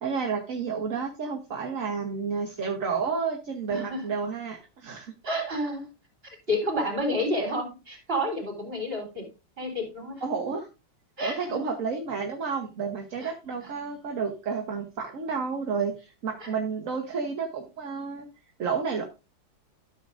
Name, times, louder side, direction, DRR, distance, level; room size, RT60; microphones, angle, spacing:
voice 1, 0.0-5.1 10.2-10.7 11.2-18.3 18.6-19.0, right 5 dB, 45° right, 2 dB, 1.3 m, -31 dB
voice 2, 3.7-4.0 5.2-5.9 6.2-9.3 9.6-10.2 11.2-11.6 13.2-13.3 13.6-13.7 16.4-16.5, equal, 25° right, 3 dB, 3.7 m, -30 dB
13.0 x 7.5 x 2.5 m, 0.29 s
omnidirectional pair, 2.2 m